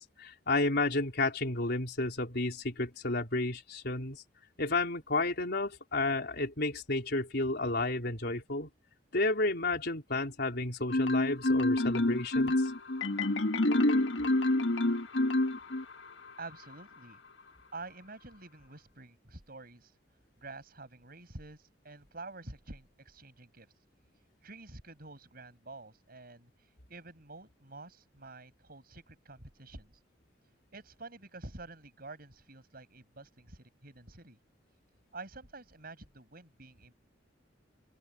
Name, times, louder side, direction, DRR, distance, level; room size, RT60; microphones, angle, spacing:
voice 1, 0.0-4.2 4.6-8.7 9.1-12.7, left 2 dB, 60° left, 4.3 m, -31 dB
Marimba xylophone, 10.9-16.1, left 1 dB, 80° left, 1.3 m, -27 dB
voice 2, 16.4-17.2 17.7-19.9 20.4-23.7 24.4-30.0 30.7-34.4 35.1-36.9, right 3 dB, 55° right, 7.8 m, -48 dB
open air
head